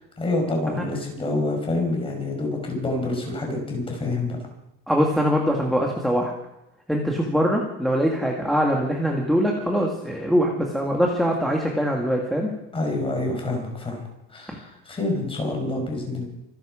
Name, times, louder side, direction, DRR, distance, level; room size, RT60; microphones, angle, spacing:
voice 1, 0.2-4.4 12.7-14.0 14.3-16.3, left 2 dB, 15° left, 2 dB, 5.0 m, -27 dB
voice 2, 4.9-6.3 6.9-12.5 14.5-14.6, equal, ahead, 0 dB, 1.8 m, -22 dB
25.5 x 11.0 x 5.0 m, 0.88 s
cardioid pair, 160°, 31 cm